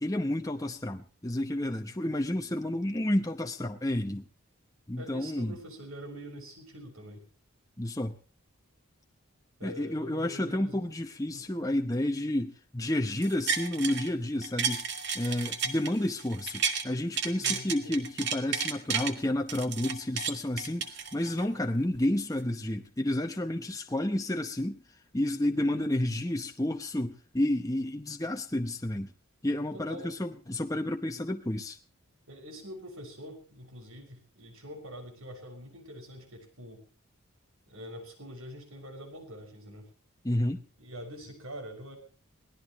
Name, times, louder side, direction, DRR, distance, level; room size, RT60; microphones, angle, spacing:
voice 1, 0.0-4.2 4.9-5.5 7.8-8.1 9.6-14.8 15.1-24.8 25.1-29.1 29.4-31.8 40.2-40.6, left 1 dB, 15° left, 4 dB, 0.8 m, -30 dB
voice 2, 5.0-7.2 9.6-10.9 11.3-11.5 17.4-18.1 25.5-25.9 29.7-30.1 32.3-36.8 37.7-39.9 40.8-42.0, equal, 80° right, 4 dB, 6.2 m, -45 dB
sound 1, 13.2-14.1 14.4-16.8 17.2-19.1 19.5-21.5 21.9-22.0, right 6 dB, 50° right, 2.0 m, -32 dB
23.5 x 18.5 x 3.1 m, 0.38 s
head